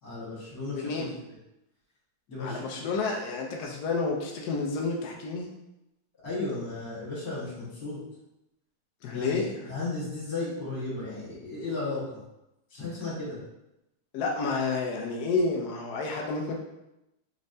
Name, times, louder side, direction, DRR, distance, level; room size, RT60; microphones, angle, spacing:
voice 1, 0.0-1.1 2.3-2.9 6.2-8.0 9.1-12.2 12.7-13.4, left 3 dB, 45° left, -7 dB, 1.9 m, -35 dB
voice 2, 0.7-1.1 2.4-5.5 9.0-9.7 14.1-16.5, left 3 dB, 85° left, 0 dB, 0.8 m, -30 dB
4.3 x 3.1 x 2.6 m, 0.91 s
omnidirectional pair, 2.3 m